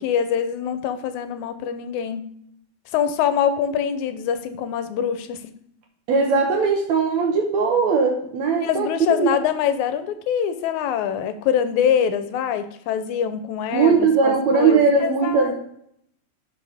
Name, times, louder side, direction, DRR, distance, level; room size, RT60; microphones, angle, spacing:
voice 1, 0.0-2.2 2.9-5.4 8.6-15.5, left 8 dB, 75° left, 10 dB, 2.0 m, -24 dB
voice 2, 6.1-8.9 9.2-9.3 13.7-15.5, right 5 dB, 70° right, 2 dB, 2.0 m, -19 dB
11.0 x 5.1 x 3.5 m, 0.72 s
omnidirectional pair, 3.6 m